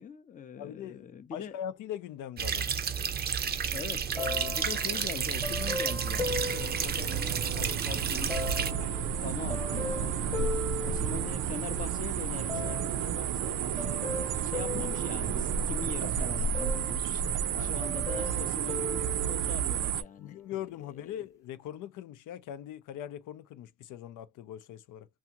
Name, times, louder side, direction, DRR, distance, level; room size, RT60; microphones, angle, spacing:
voice 1, 0.0-1.6 3.7-10.2 10.8-20.4 21.0-21.2, left 6 dB, 25° left, 0.4 m, -43 dB
voice 2, 0.6-2.7 6.8-8.0 10.3-10.6 17.5-17.9 20.2-25.1, left 11 dB, 80° left, 0.5 m, -42 dB
sound 1, 2.4-8.7, right 7 dB, 30° right, 0.5 m, -32 dB
sound 2, 3.8-20.0, right 8 dB, 80° right, 0.5 m, -32 dB
sound 3, 4.2-7.8 8.3-11.8 12.5-13.1 13.8-16.1 16.5-17.6 17.8-19.9 20.5-20.6, left 3 dB, 10° left, 0.9 m, -39 dB
2.7 x 2.4 x 2.8 m
cardioid pair, 100°, 31 cm